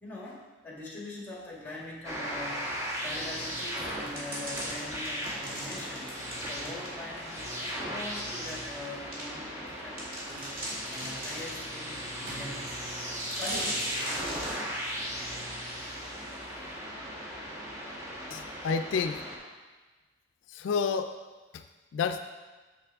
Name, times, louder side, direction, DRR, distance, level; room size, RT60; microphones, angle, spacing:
voice 1, 0.0-6.1 6.5-10.5 10.9-12.7 13.4-13.9, left 1 dB, 10° left, -4 dB, 1.6 m, -42 dB
sound 1, 2.0-19.4, equal, 15° right, 1.3 m, -37 dB
sound 2, 3.6-7.2 7.7-7.8 8.5-8.6 9.1-9.3 9.7-9.8 10.0-11.6 12.3-12.8 13.2-14.6, right 1 dB, 50° right, 2.0 m, -38 dB
voice 2, 18.3-19.3 20.5-21.2 21.5-21.6 21.9-22.2, left 5 dB, 80° left, 8 dB, 0.3 m, -30 dB
6.8 x 6.6 x 3.5 m, 1.3 s
head